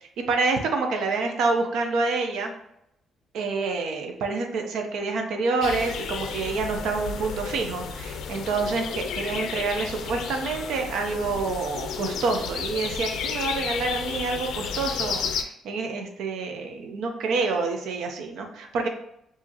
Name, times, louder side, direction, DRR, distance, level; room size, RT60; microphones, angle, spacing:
voice 1, 0.3-2.5 3.3-18.9, right 3 dB, 75° right, 4 dB, 0.7 m, -27 dB
sound 1, 5.6-15.4, left 6 dB, 75° left, 0.4 m, -32 dB
4.7 x 2.8 x 2.9 m, 0.78 s
cardioid pair, 155°, 0 cm